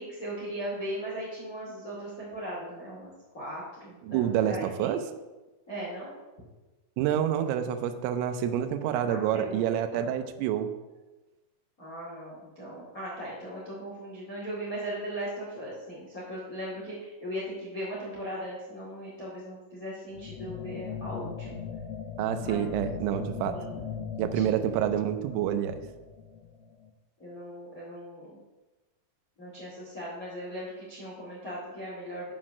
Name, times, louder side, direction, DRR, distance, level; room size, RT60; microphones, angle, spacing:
voice 1, 0.0-3.1 3.3-4.9 5.7-6.1 9.1-10.1 11.8-21.6 22.4-22.7 23.5-23.7 24.3-24.6 27.2-28.4 29.4-32.3, equal, 65° left, -6 dB, 0.8 m, -38 dB
voice 2, 4.1-5.0 7.0-10.7 22.2-23.6 24.2-25.8, right 10 dB, 85° right, 8 dB, 3.2 m, -28 dB
sound 1, 20.1-26.9, left 6 dB, 80° left, 3.2 m, -39 dB
7.2 x 6.0 x 6.2 m, 1.1 s
omnidirectional pair, 5.8 m